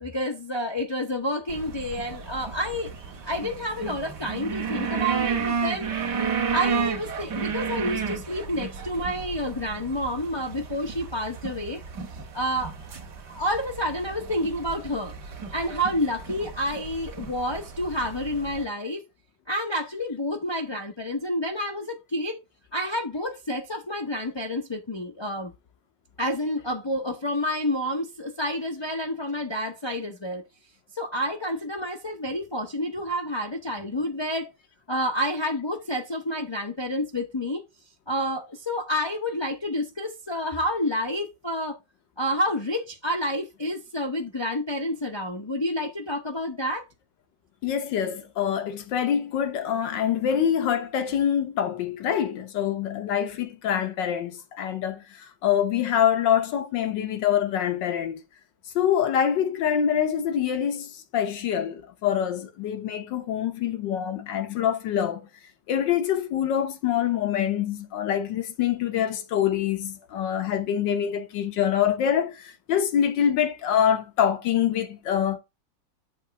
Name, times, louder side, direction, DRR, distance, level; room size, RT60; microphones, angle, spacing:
voice 1, 0.0-2.9 3.2-5.9 6.5-11.8 12.3-12.8 13.3-15.1 15.5-19.0 19.5-22.4 22.7-25.5 26.2-30.4 30.9-34.5 34.9-37.6 38.1-41.8 42.2-46.8, equal, 40° left, 0.4 m, -29 dB
sound 1, 1.5-18.6, right 6 dB, 65° right, 2.0 m, -32 dB
voice 2, 47.6-58.2 58.7-65.3 65.7-75.4, left 9 dB, 80° left, 1.7 m, -25 dB
7.2 x 3.1 x 5.8 m
omnidirectional pair, 2.0 m